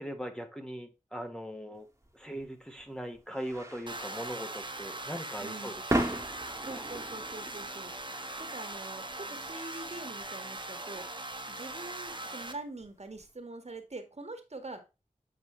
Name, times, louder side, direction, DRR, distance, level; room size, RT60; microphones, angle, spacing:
voice 1, 0.0-1.9 2.1-5.7 6.1-6.2, equal, 5° left, 4 dB, 1.4 m, -40 dB
sound 1, 2.0-13.3, right 1 dB, 20° right, 1.6 m, -39 dB
sound 2, 3.9-12.5, right 2 dB, 35° right, 1.4 m, -40 dB
voice 2, 5.4-5.8 6.6-7.9 8.4-11.0 11.5-14.9, right 2 dB, 55° right, 6 dB, 1.7 m, -44 dB
8.2 x 4.7 x 3.2 m, 0.27 s
wide cardioid pair, 40°, 13 cm